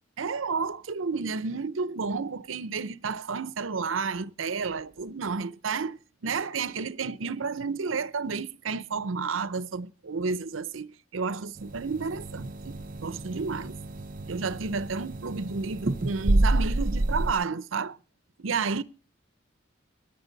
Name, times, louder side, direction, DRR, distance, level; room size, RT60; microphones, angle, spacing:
voice 1, 0.2-13.8 14.3-18.0 18.4-18.8, right 4 dB, 80° right, 0.7 m, -31 dB
sound 1, 11.6-17.3, right 2 dB, 45° right, 0.7 m, -29 dB
18.0 x 10.5 x 4.0 m
head